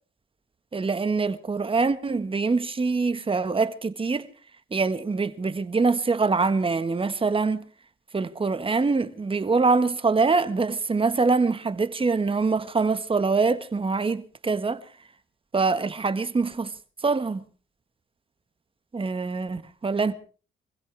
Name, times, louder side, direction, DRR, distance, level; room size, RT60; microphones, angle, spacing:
voice 1, 0.7-4.3 4.7-7.6 8.1-14.8 15.5-16.7 17.0-17.4 18.9-20.1, right 4 dB, 25° right, 1.6 m, -24 dB
25.5 x 16.0 x 3.5 m
cardioid pair, 90°, 20 cm